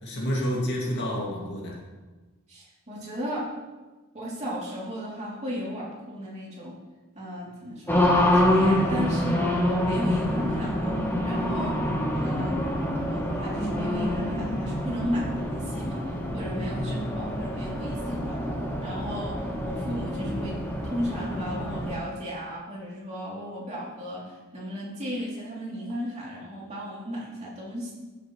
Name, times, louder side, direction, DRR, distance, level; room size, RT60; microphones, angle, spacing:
voice 1, 0.0-1.8 16.6-17.1, equal, 55° left, -3 dB, 2.3 m, -29 dB
voice 2, 2.5-3.4 4.1-6.7 7.1-10.9 11.2-11.8 12.1-12.6 13.0-16.0 16.3-18.4 18.8-20.6 20.8-27.9, equal, 30° right, -6 dB, 3.1 m, -35 dB
Race car auto racing, 7.9-21.9, left 1 dB, 10° left, 1.2 m, -26 dB
14.5 x 7.0 x 3.2 m, 1.2 s
head